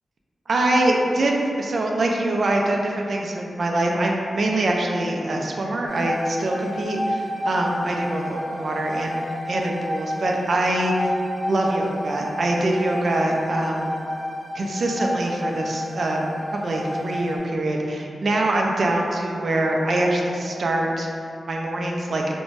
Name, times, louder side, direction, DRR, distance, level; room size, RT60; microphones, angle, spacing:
voice 1, 0.5-9.2 9.5-11.1 11.5-13.9 14.5-16.2 16.6-21.1 21.5-22.2, right 1 dB, 60° right, 0 dB, 0.3 m, -24 dB
sound 1, 5.9-17.4, equal, 70° left, 0.5 m, -31 dB
2.5 x 2.1 x 3.2 m, 2.5 s
wide cardioid pair, 105°, 0 cm